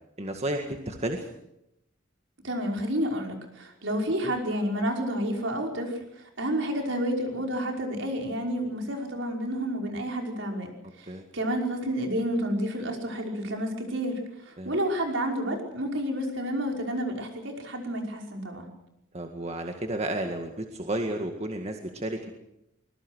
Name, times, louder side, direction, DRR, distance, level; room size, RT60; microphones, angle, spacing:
voice 1, 0.2-1.3 4.2-4.3 11.1-11.2 14.6-14.7 19.1-22.3, right 1 dB, 35° right, 4 dB, 1.9 m, -32 dB
voice 2, 2.4-10.7 11.0-18.7, equal, 70° right, 2 dB, 5.5 m, -30 dB
24.5 x 21.5 x 6.4 m, 0.82 s
head